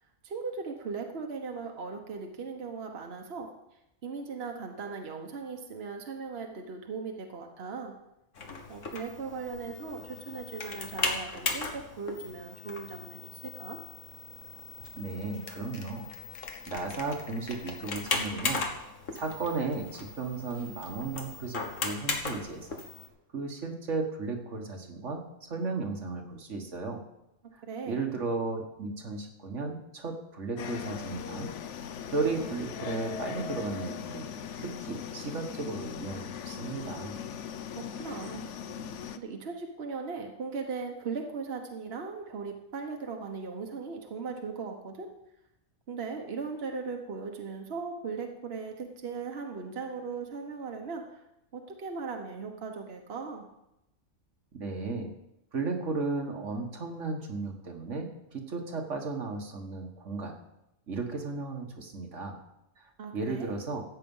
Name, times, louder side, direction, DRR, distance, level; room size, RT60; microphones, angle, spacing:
voice 1, 0.2-3.5 4.0-8.0 8.7-13.8 27.6-28.0 37.8-38.5 38.8-45.1 45.9-51.2 51.5-53.5 63.0-63.6, right 5 dB, 55° right, 3 dB, 1.3 m, -38 dB
sound 1, 8.4-23.1, left 3 dB, 90° left, 1.8 m, -37 dB
voice 2, 14.9-16.1 16.7-18.6 19.1-22.8 23.3-27.0 27.5-31.5 32.1-34.3 34.6-37.1 54.5-55.1 55.5-60.4 60.9-62.4 62.8-63.8, right 3 dB, 75° right, 3 dB, 1.8 m, -35 dB
sound 2, 30.6-39.2, left 8 dB, 75° left, 1.0 m, -39 dB
14.0 x 8.4 x 5.5 m, 0.88 s
omnidirectional pair, 1.3 m